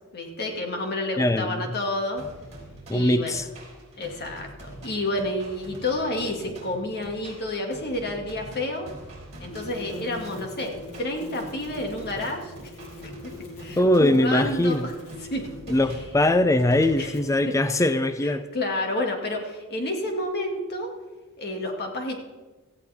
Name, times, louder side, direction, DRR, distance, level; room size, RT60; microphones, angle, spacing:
voice 1, 0.1-2.2 2.9-3.3 4.0-8.9 9.4-12.5 13.0-14.9 15.3-15.5 17.0-17.2 18.5-20.9 21.4-22.2, left 1 dB, 45° left, 2.3 m, -30 dB
voice 2, 1.2-1.8 2.9-3.5 13.8-14.9 15.7-18.5, left 1 dB, 15° left, 0.5 m, -21 dB
sound 1, 2.2-16.9, right 1 dB, 30° right, 4.4 m, -44 dB
sound 2, 9.5-15.9 17.1-17.4, left 1 dB, 85° left, 2.5 m, -42 dB
17.5 x 14.5 x 3.6 m
head